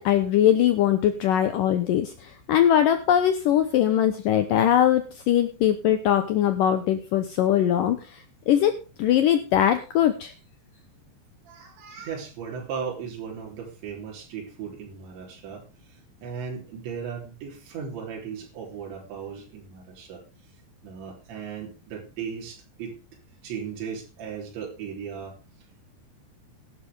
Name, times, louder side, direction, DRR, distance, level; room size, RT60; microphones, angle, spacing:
voice 1, 0.0-8.2 8.5-8.7 9.0-10.3, left 10 dB, 80° left, 9 dB, 1.9 m, -21 dB
voice 2, 11.5-20.2 20.8-22.9 23.4-25.4, right 7 dB, 80° right, -1 dB, 5.7 m, -37 dB
16.5 x 11.5 x 3.5 m, 0.32 s
omnidirectional pair, 5.1 m